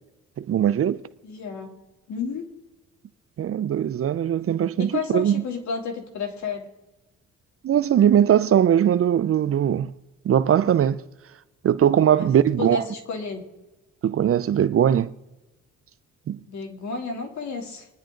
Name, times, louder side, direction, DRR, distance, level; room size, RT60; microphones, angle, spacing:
voice 1, 0.4-1.0 3.4-5.4 7.6-9.9 10.2-11.0 11.6-12.8 14.0-15.1 16.3-16.4, right 9 dB, 50° right, 0.6 m, -20 dB
voice 2, 1.2-1.7 2.1-2.5 4.8-6.7 12.1-12.3 12.6-13.4 16.5-17.9, left 5 dB, 65° left, 3.1 m, -31 dB
25.5 x 10.5 x 3.9 m
cardioid pair, 90°, 30 cm